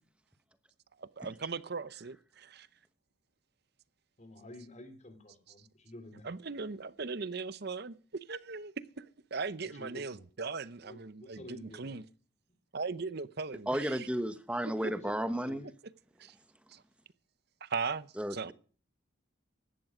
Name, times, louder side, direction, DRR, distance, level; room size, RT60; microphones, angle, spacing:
voice 1, 1.0-2.7 6.2-8.0 8.3-12.0 12.7-14.1 14.7-14.9 16.2-16.4 16.7-16.8 17.6-18.5, right 4 dB, 50° right, 0.7 m, -39 dB
voice 2, 4.2-6.3 9.7-10.2 10.8-12.0 14.8-15.7, left 1 dB, 35° left, 3.2 m, -51 dB
voice 3, 13.7-15.6 18.2-18.5, equal, 5° right, 1.1 m, -33 dB
16.0 x 11.5 x 5.0 m
head